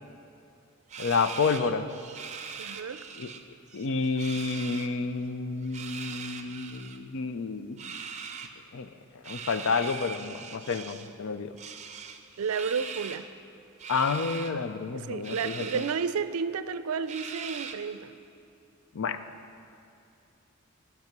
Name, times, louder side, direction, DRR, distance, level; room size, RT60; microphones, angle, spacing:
sound 1, 0.9-3.4 3.7-4.9 5.6-7.0 7.8-8.5 9.2-11.1 11.6-13.3 13.8-14.5 15.2-15.9 16.4-16.5 17.1-18.0, right 6 dB, 35° right, 0.6 m, -41 dB
voice 1, 1.0-1.8 3.2-3.3 3.7-7.9 8.7-8.9 9.3-11.6 13.9-15.8 18.9-19.2, left 4 dB, 65° left, 11 dB, 0.5 m, -30 dB
voice 2, 2.6-3.1 12.4-13.3 14.9-18.1, right 6 dB, 85° right, 13 dB, 0.4 m, -32 dB
13.5 x 6.0 x 6.0 m, 2.7 s
head